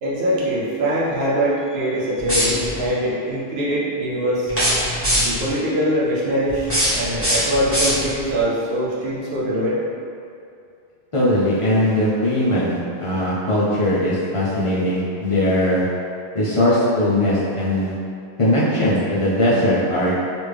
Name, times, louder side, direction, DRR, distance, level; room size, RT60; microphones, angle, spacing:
voice 1, 0.0-4.5 5.2-9.8, equal, 75° right, -5 dB, 0.8 m, -23 dB
sound 1, 2.2-2.9 4.5-5.5 6.5-8.3, equal, 15° right, 1.2 m, -22 dB
voice 2, 11.1-15.8 16.3-17.9 18.4-20.1, left 1 dB, 40° left, -9 dB, 0.5 m, -19 dB
3.4 x 2.5 x 3.2 m, 2.5 s
omnidirectional pair, 1.1 m